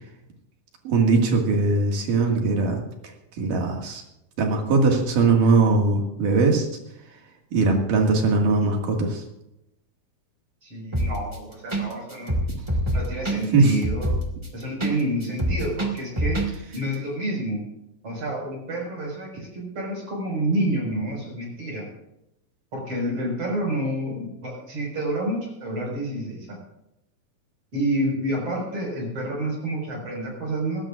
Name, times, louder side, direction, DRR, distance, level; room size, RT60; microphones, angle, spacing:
voice 1, 0.9-2.8 3.4-4.0 4.4-6.7 7.5-9.2 13.5-13.7, right 3 dB, 70° right, 1 dB, 3.6 m, -20 dB
voice 2, 10.6-12.4 12.9-14.2 14.5-16.4 16.7-17.6 18.0-21.8 22.7-26.6 27.7-30.8, right 1 dB, 45° right, -1 dB, 6.3 m, -28 dB
sound 1, 10.9-11.4 11.7-11.8 12.1-14.9 15.2-16.5 16.7-16.8, right 1 dB, 20° right, 0.7 m, -25 dB
20.5 x 17.0 x 2.5 m, 0.86 s
omnidirectional pair, 3.9 m